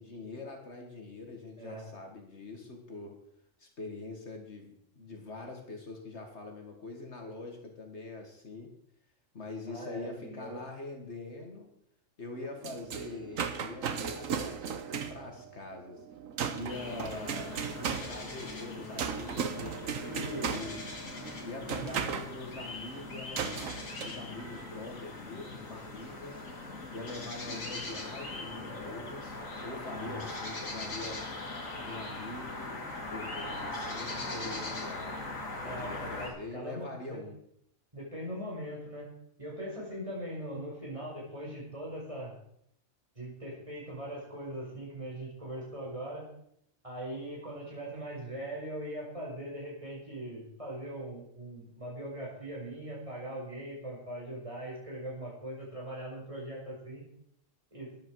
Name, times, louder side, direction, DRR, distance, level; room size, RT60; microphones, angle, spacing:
voice 1, 0.0-3.2 3.6-8.7 9.3-11.7 12.2-16.0 16.5-20.8 21.4-26.4 26.9-31.2 31.8-32.8 33.1-37.4, left 3 dB, 60° left, 3 dB, 2.0 m, -44 dB
voice 2, 9.7-10.6 20.0-20.6 21.6-22.0 29.9-30.1 35.6-37.2 37.9-39.1 39.4-42.3 43.2-46.3 46.8-57.0 57.7-57.9, right 1 dB, 25° right, -4 dB, 5.1 m, -40 dB
sound 1, 12.4-22.3 23.4-24.1, right 7 dB, 85° right, 1.4 m, -37 dB
sound 2, 16.7-36.3, left 2 dB, 85° left, 2.7 m, -40 dB
13.0 x 10.5 x 4.7 m, 0.73 s
omnidirectional pair, 1.3 m